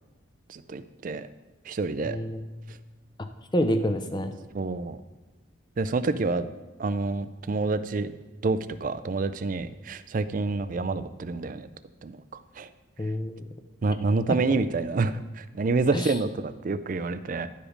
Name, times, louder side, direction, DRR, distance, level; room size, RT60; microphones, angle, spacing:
voice 1, 0.5-1.3 1.7-2.2 4.5-5.0 5.8-6.5 6.8-8.1 8.4-11.7 12.0-12.2 12.6-12.7 13.8-17.5, right 3 dB, 40° right, 13 dB, 0.4 m, -28 dB
voice 2, 2.0-2.5 3.5-4.4 13.0-13.4 14.3-14.4 15.9-16.1, equal, 20° left, 7 dB, 0.6 m, -27 dB
11.0 x 5.0 x 5.0 m, 1.3 s
head